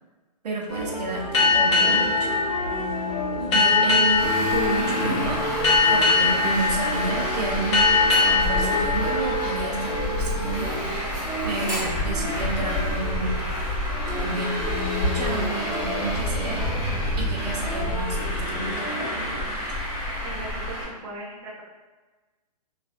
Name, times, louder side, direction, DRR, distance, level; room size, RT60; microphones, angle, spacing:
voice 1, 0.4-2.4 3.5-5.4 5.9-10.9 11.4-13.5 14.1-14.6 15.1-16.6 17.2-18.7, right 3 dB, 75° right, -1 dB, 0.7 m, -30 dB
sound 1, 0.7-19.5, equal, 65° left, 1.3 m, -32 dB
sound 2, 1.3-10.5, left 4 dB, 45° left, 0.8 m, -23 dB
Traffic noise roadway noise, 4.1-20.8, left 1 dB, 15° left, 1.1 m, -29 dB
voice 2, 20.2-21.6, right 2 dB, 20° right, -7 dB, 0.6 m, -38 dB
2.8 x 2.4 x 2.5 m, 1.2 s
hypercardioid pair, 155°, 21 cm